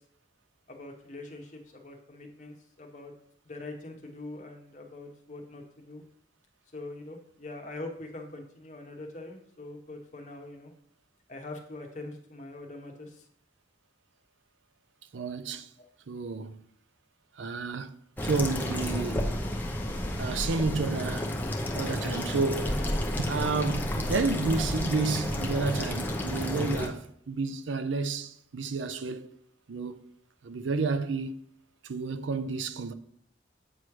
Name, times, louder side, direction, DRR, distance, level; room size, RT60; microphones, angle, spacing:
voice 1, 0.7-3.1 3.4-6.0 6.7-10.7 11.3-13.3 15.8-15.9, left 2 dB, 40° left, 1.1 m, -43 dB
voice 2, 15.1-15.7 16.1-16.6 17.4-18.0 18.2-19.3 20.1-21.3 21.7-22.9 23.2-29.3 29.7-30.0 30.4-31.4 31.8-32.9, right 4 dB, 90° right, 0.5 m, -31 dB
sound 1, 18.2-26.9, left 1 dB, 10° left, 0.7 m, -31 dB
7.9 x 3.2 x 5.9 m
head